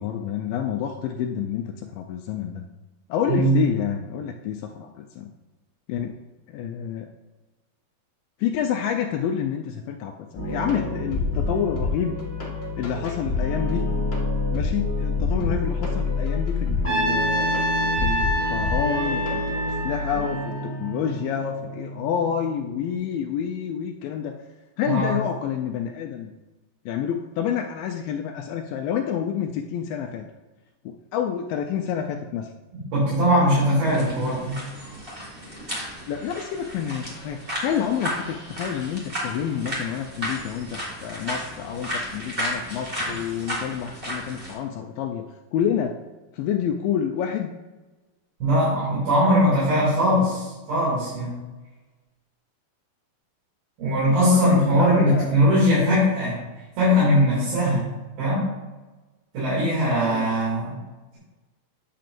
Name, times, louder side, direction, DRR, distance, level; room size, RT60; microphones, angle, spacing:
voice 1, 0.0-2.6 3.1-5.3 5.9-6.1 6.5-7.1 8.4-12.1 12.8-13.8 14.5-24.4 24.8-26.3 26.9-30.2 30.9-32.5 36.1-45.2 45.5-45.9 46.3-47.5 54.3-55.3 60.1-60.3, left 8 dB, 80° left, 4 dB, 2.1 m, -28 dB
sound 1, 10.3-22.9, left 3 dB, 60° left, 0.6 m, -27 dB
Trumpet, 16.8-21.1, right 1 dB, 10° left, 2.0 m, -27 dB
voice 2, 32.7-34.6 48.4-51.3 53.8-56.4 56.8-57.8 58.2-58.5 59.3-60.8, equal, 75° right, -9 dB, 4.4 m, -20 dB
sound 2, 33.8-44.5, equal, 25° right, 1.2 m, -33 dB
9.0 x 7.4 x 2.6 m, 1.1 s
omnidirectional pair, 4.3 m